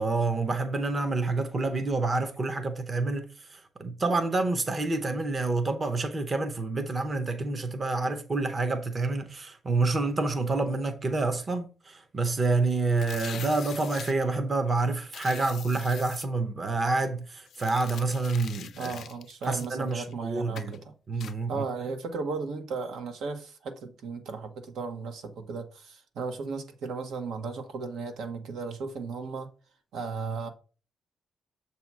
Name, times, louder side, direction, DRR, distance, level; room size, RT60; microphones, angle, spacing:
voice 1, 0.0-18.9 19.5-20.8 21.1-21.6, right 3 dB, 25° right, 0.7 m, -28 dB
sound 1, 12.9-14.1 15.1-16.3 17.5-20.1 20.6-20.8 21.2-21.4, left 8 dB, 55° left, 0.4 m, -43 dB
voice 2, 18.7-29.5 29.9-30.5, right 4 dB, 80° right, 1.2 m, -35 dB
7.2 x 2.9 x 5.9 m
cardioid pair, 165°, 0 cm